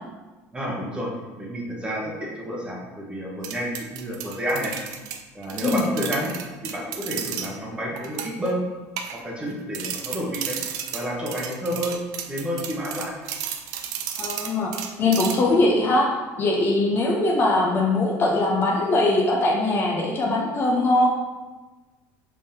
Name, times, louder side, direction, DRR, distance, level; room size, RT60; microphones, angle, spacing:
voice 1, 0.5-1.1 1.4-4.7 5.3-6.3 6.6-8.6 9.2-10.6 10.9-12.0 12.3-13.1, equal, 15° right, -3 dB, 1.0 m, -29 dB
sound 1, 3.4-7.5 8.0-8.5 9.0-9.5 9.7-15.6, right 9 dB, 70° right, 0.4 m, -33 dB
voice 2, 14.2-14.7 15.0-16.1 16.4-21.1, left 2 dB, 35° left, -1 dB, 0.6 m, -21 dB
5.2 x 3.6 x 2.8 m, 1.2 s
cardioid pair, 135°, 7 cm